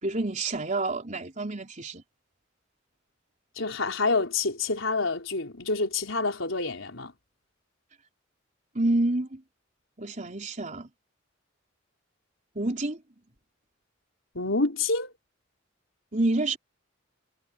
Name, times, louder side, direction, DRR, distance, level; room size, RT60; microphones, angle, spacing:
voice 1, 0.0-2.0 8.7-9.4 10.0-10.9 12.6-13.0 16.1-16.6, right 2 dB, 40° right, 3.9 m, -28 dB
voice 2, 3.6-7.1 14.3-15.1, left 3 dB, 80° left, 4.2 m, -27 dB
head